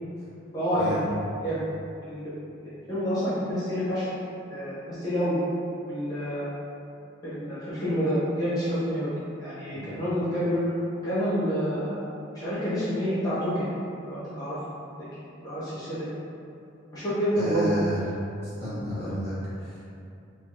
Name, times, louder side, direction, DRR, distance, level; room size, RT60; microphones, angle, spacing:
voice 1, 0.5-1.0 1.4-1.6 2.1-2.3 2.6-4.0 4.5-5.4 5.9-6.4 7.2-9.1 9.4-10.6 11.0-12.0 12.3-13.7 14.1-14.6 15.4-16.1 16.9-17.7, equal, 20° left, -12 dB, 0.6 m, -28 dB
voice 2, 17.3-18.1 18.6-19.3 19.6-19.7, equal, 30° right, -14 dB, 1.2 m, -30 dB
3.3 x 2.4 x 2.5 m, 2.7 s
head